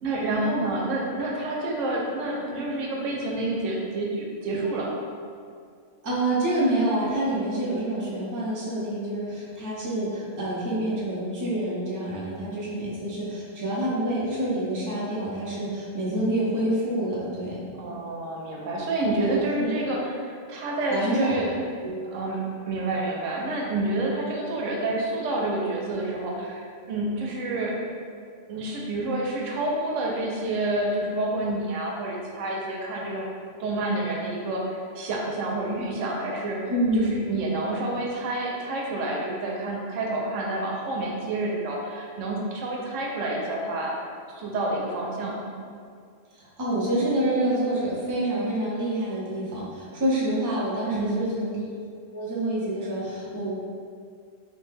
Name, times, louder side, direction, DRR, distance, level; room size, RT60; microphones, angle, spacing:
voice 1, 0.0-5.0 17.7-21.5 22.1-27.8 28.5-33.3 33.6-36.6 37.0-43.9 44.3-45.5 50.9-51.3, right 2 dB, 90° right, -2 dB, 1.0 m, -28 dB
voice 2, 6.0-17.6 19.2-19.7 20.9-21.4 21.8-22.1 36.7-37.2 46.3-51.7 52.1-53.5, right 1 dB, 30° right, -7 dB, 0.4 m, -27 dB
3.1 x 2.1 x 3.2 m, 2.2 s
omnidirectional pair, 1.3 m